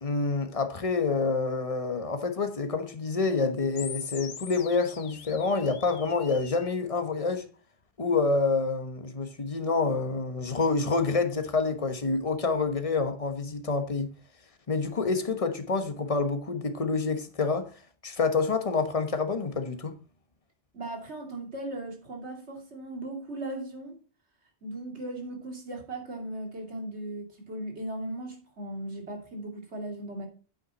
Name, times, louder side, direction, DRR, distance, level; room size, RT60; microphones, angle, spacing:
voice 1, 0.0-7.5 8.0-14.1 14.7-17.7 18.0-19.9, left 4 dB, 35° left, 1.2 m, -27 dB
sound 1, 3.8-6.8, left 7 dB, 70° left, 1.1 m, -42 dB
voice 2, 20.7-24.0 24.6-30.3, right 1 dB, 85° right, 2.9 m, -37 dB
8.9 x 8.2 x 4.1 m
omnidirectional pair, 1.1 m